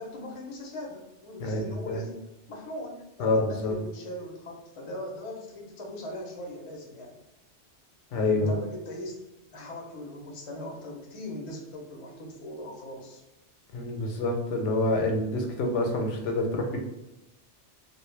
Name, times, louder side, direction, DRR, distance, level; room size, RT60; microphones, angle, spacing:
voice 1, 0.0-2.2 2.5-7.1 8.3-9.2 9.5-13.2, left 1 dB, 40° left, -1 dB, 0.5 m, -40 dB
voice 2, 1.4-2.0 3.2-3.7 8.1-8.6 13.7-16.8, left 2 dB, 85° left, 2 dB, 0.9 m, -27 dB
2.2 x 2.2 x 3.2 m, 0.94 s
omnidirectional pair, 1.2 m